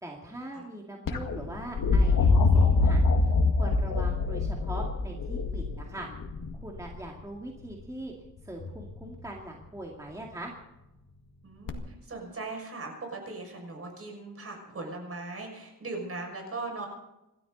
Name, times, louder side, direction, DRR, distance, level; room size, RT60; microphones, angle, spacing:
voice 1, 0.0-6.1 6.5-8.1 8.4-10.5, right 1 dB, 10° right, -1 dB, 2.1 m, -41 dB
sound 1, 1.1-7.0 8.6-9.1 11.7-11.8, left 3 dB, 90° left, 2.0 m, -24 dB
voice 2, 11.4-16.9, right 3 dB, 45° right, 2 dB, 6.1 m, -39 dB
27.5 x 13.0 x 4.0 m, 0.93 s
wide cardioid pair, 170°, 32 cm